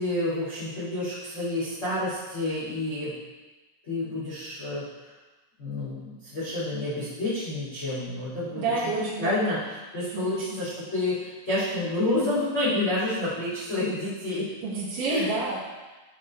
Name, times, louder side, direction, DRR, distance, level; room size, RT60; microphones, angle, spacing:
voice 1, 0.0-3.1 3.8-4.8 5.6-8.6 9.2-14.5 15.1-15.3, left 2 dB, 20° left, -10 dB, 2.0 m, -29 dB
voice 2, 8.6-9.4 10.1-10.6 14.6-15.6, right 3 dB, 65° right, -8 dB, 2.2 m, -29 dB
10.5 x 5.0 x 4.4 m, 1.2 s
omnidirectional pair, 5.7 m